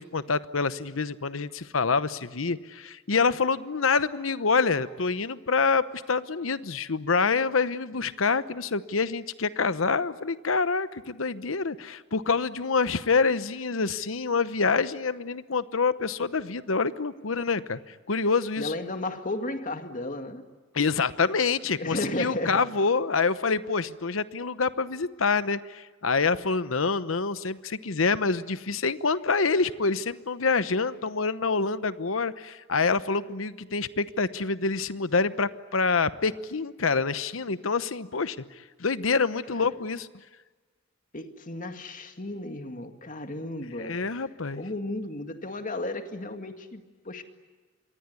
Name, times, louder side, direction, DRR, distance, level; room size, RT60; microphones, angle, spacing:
voice 1, 0.0-17.8 18.1-18.7 20.7-38.4 38.8-40.1 43.8-44.6, left 4 dB, 85° left, 14 dB, 1.0 m, -26 dB
voice 2, 18.6-20.4 21.8-22.7 41.1-44.1 44.5-47.2, left 2 dB, 40° left, 6 dB, 2.1 m, -34 dB
27.0 x 23.0 x 9.6 m, 1.3 s
head